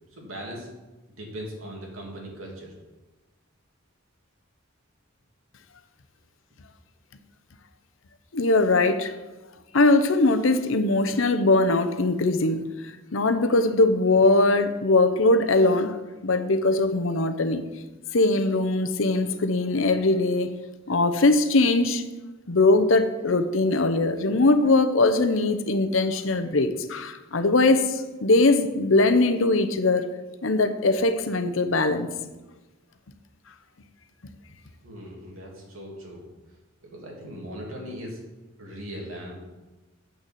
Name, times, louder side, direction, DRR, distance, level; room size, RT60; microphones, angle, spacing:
voice 1, 0.1-0.7 1.2-2.7 34.8-36.3 36.8-38.2 38.6-39.3, equal, 80° right, -1 dB, 2.9 m, -39 dB
voice 2, 8.3-9.1 9.7-15.9 16.2-17.6 18.1-20.5 20.9-22.0 22.5-30.0 30.4-32.1, left 2 dB, 70° left, 10 dB, 0.8 m, -21 dB
7.9 x 6.6 x 7.5 m, 1.1 s
head